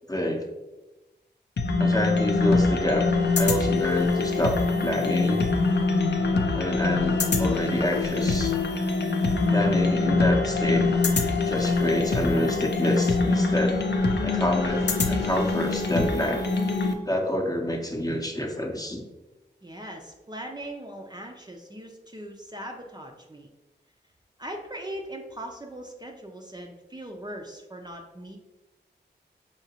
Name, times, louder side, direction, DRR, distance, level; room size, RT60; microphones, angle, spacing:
voice 1, 0.1-0.5 1.8-3.1 3.4-5.4 6.5-8.6 9.5-11.0 11.5-13.8 14.2-16.4 17.1-19.0, left 1 dB, 20° left, 2 dB, 0.7 m, -28 dB
sound 1, 1.6-16.9, left 3 dB, 70° left, 0.5 m, -24 dB
voice 2, 19.6-23.5 24.4-28.4, right 1 dB, 25° right, 1 dB, 0.5 m, -40 dB
4.9 x 2.8 x 2.8 m, 1.1 s
cardioid pair, 40°, 19 cm